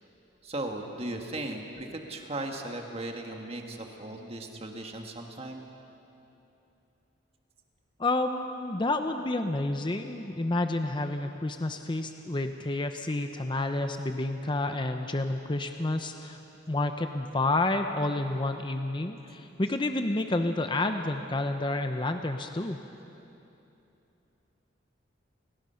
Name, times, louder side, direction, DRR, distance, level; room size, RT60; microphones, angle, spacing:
voice 1, 0.4-5.6, right 1 dB, 35° right, 2 dB, 1.7 m, -37 dB
voice 2, 8.0-16.4 16.7-22.8, left 2 dB, 25° left, 6 dB, 0.7 m, -29 dB
30.0 x 18.5 x 5.7 m, 2.9 s
head